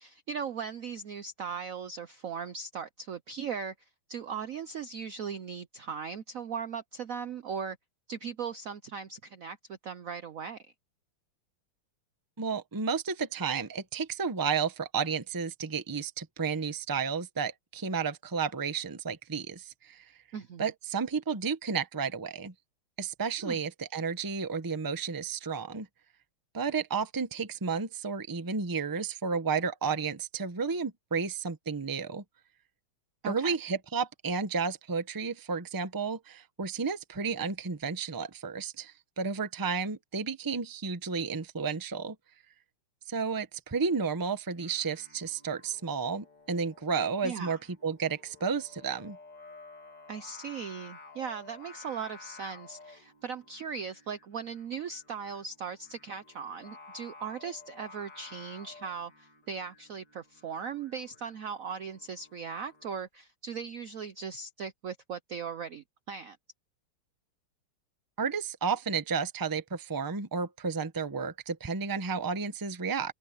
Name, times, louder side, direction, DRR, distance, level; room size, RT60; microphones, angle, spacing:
voice 1, 0.0-3.7 4.1-7.8 8.1-10.7 20.3-20.6 23.4-23.6 33.2-33.5 47.2-47.6 50.1-66.4, right 6 dB, 85° right, 0.7 m, -38 dB
voice 2, 12.4-20.1 20.6-22.5 23.0-25.9 26.5-32.2 33.3-42.2 43.1-49.2 68.2-73.1, right 5 dB, 25° right, 0.4 m, -32 dB
Singing, 44.5-63.0, left 3 dB, 50° left, 3.8 m, -53 dB
omnidirectional pair, 2.4 m